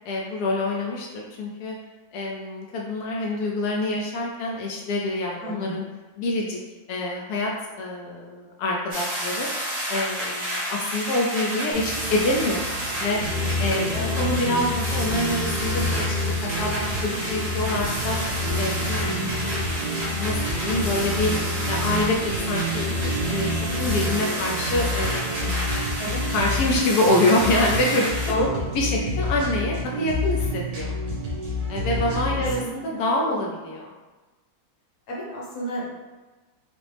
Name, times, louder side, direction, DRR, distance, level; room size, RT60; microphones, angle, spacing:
voice 1, 0.0-1.8 2.1-5.8 6.2-6.6 6.9-7.5 7.8-9.5 9.9-13.2 13.6-13.9 14.2-18.2 18.6-19.8 20.2-21.3 21.7-22.2 22.5-22.8 23.3-23.5 23.8-25.7 26.3-28.1 28.7-30.9 31.7-33.9, left 2 dB, 80° left, -1 dB, 0.8 m, -26 dB
voice 2, 5.4-5.8 13.8-14.1 19.0-19.4 26.0-26.2 28.3-28.6 31.8-32.0 32.3-32.9 33.2-33.5 35.1-36.0, left 1 dB, 50° left, -4 dB, 1.0 m, -31 dB
sound 1, 8.9-28.3, equal, 30° right, 0.8 m, -31 dB
sound 2, 11.7-25.6, right 4 dB, 75° right, 0.9 m, -36 dB
sound 3, 13.2-32.6, left 1 dB, 55° right, 1.3 m, -28 dB
5.0 x 2.0 x 3.3 m, 1.2 s
omnidirectional pair, 2.2 m